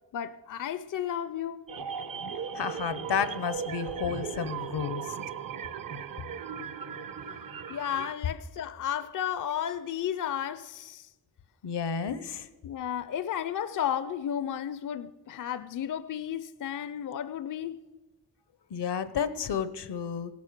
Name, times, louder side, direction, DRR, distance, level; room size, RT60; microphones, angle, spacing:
voice 1, 0.1-1.6 7.7-11.1 12.6-17.8, left 9 dB, 50° left, 0.5 m, -33 dB
sound 1, 1.7-8.1, right 7 dB, 55° right, 0.8 m, -37 dB
voice 2, 2.5-5.0 6.9-7.0 11.6-12.5 18.7-20.3, left 7 dB, 85° left, 0.8 m, -31 dB
17.0 x 8.4 x 6.6 m
wide cardioid pair, 120°, 40 cm